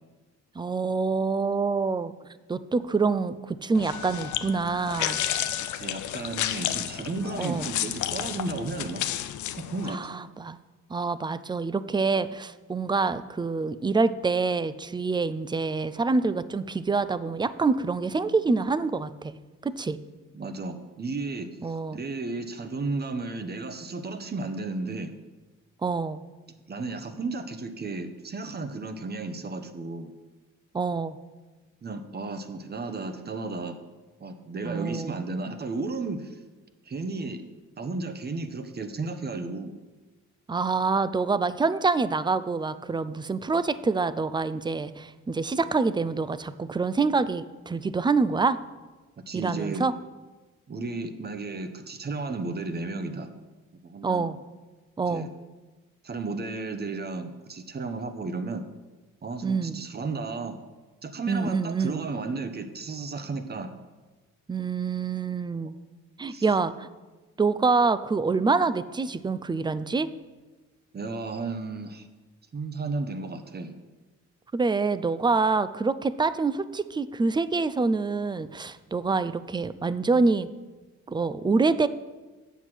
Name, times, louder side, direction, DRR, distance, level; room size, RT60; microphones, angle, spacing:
voice 1, 0.6-2.1 2.5-5.2 7.4-7.7 9.9-10.6 10.9-19.3 19.6-20.0 21.6-22.0 25.8-26.2 30.7-31.2 34.6-35.2 40.5-48.6 49.3-49.9 54.0-54.4 55.0-55.3 59.4-59.8 61.3-62.0 64.5-65.8 66.2-66.9 67.4-70.1 74.5-80.5 81.1-81.9, right 4 dB, 15° right, 14 dB, 0.4 m, -26 dB
sound 1, 3.7-9.9, left 12 dB, 75° left, 0.6 m, -31 dB
Wind instrument woodwind instrument, 3.8-7.3, left 4 dB, 15° left, 1.7 m, -43 dB
voice 2, 5.7-9.1 9.6-10.0 20.3-25.1 26.7-30.1 31.8-33.8 34.2-36.4 36.8-37.4 37.8-39.7 49.2-49.8 50.7-53.3 53.8-54.3 55.1-55.3 56.0-58.7 59.2-60.6 61.0-63.7 66.3-66.4 70.9-72.1 72.5-73.7, right 3 dB, 35° right, 9 dB, 1.0 m, -33 dB
8.2 x 7.2 x 6.2 m, 1.2 s
cardioid pair, 90°, 30 cm